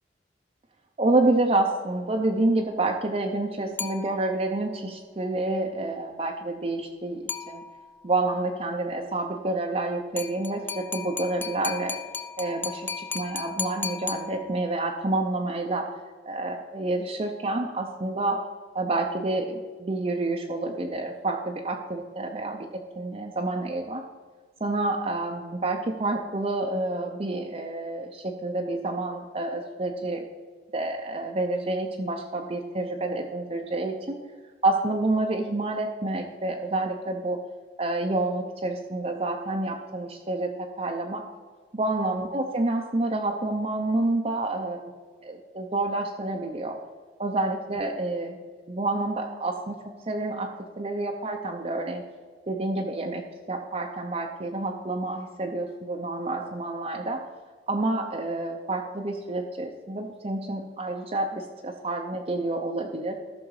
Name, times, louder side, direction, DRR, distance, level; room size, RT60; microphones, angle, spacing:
voice 1, 1.0-7.6 8.0-11.9 12.4-18.4 18.7-22.7 23.0-24.0 24.6-30.2 30.7-34.2 34.6-37.4 37.8-41.2 41.7-44.9 45.2-46.8 47.2-48.4 48.7-49.8 50.1-52.0 52.5-57.2 57.7-63.1, right 2 dB, 35° right, 1 dB, 0.6 m, -28 dB
sound 1, 3.8-4.6 7.3-8.0 10.2-14.8, left 5 dB, 10° left, 0.3 m, -35 dB
13.5 x 6.0 x 4.8 m, 1.5 s
head